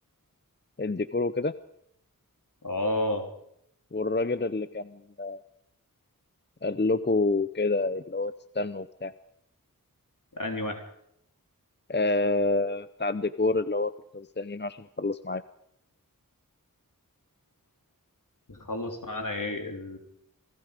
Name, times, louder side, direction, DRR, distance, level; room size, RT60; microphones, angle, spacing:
voice 1, 0.8-1.5 3.9-5.4 6.6-9.1 11.9-15.4, left 3 dB, 30° left, 13 dB, 0.7 m, -28 dB
voice 2, 2.6-3.2 10.3-10.8 18.5-20.0, left 1 dB, 65° left, 3 dB, 3.7 m, -31 dB
28.5 x 19.5 x 5.2 m, 0.75 s
wide cardioid pair, 45°, 35 cm